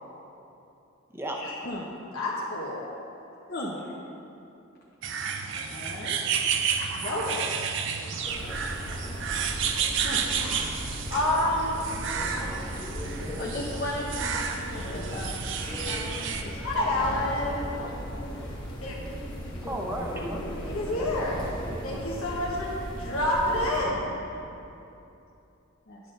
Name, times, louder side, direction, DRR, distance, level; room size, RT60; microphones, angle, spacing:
voice 1, 1.4-1.9 3.5-3.9 5.7-6.2 10.0-10.2 13.4-17.9 23.1-23.2 25.9-26.0, left 1 dB, 45° left, -4 dB, 0.8 m, -37 dB
voice 2, 2.1-2.8 6.9-7.5 10.3-10.8 11.1-11.8 12.3-12.5 16.6-17.6 18.8-19.0 20.6-21.4 21.8-24.0, left 1 dB, 85° left, -5 dB, 1.3 m, -28 dB
sound 1, 5.0-16.4, right 6 dB, 60° right, 0.5 m, -31 dB
sound 2, 8.2-23.8, equal, 20° left, 1.2 m, -37 dB
voice 3, 19.6-21.1 21.6-22.0 23.8-24.4, right 1 dB, 10° right, 0 dB, 0.8 m, -37 dB
9.9 x 3.9 x 6.6 m, 2.8 s
head